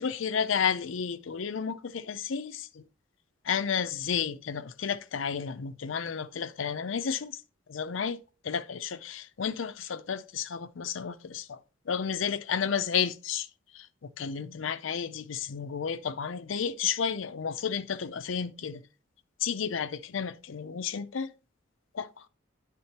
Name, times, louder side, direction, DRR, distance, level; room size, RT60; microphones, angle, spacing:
voice 1, 0.0-2.8 3.4-7.4 7.7-8.2 8.4-11.6 11.9-13.5 13.7-18.8 19.4-21.3 21.9-22.2, left 7 dB, 85° left, 0.5 m, -32 dB
9.6 x 3.7 x 4.3 m
head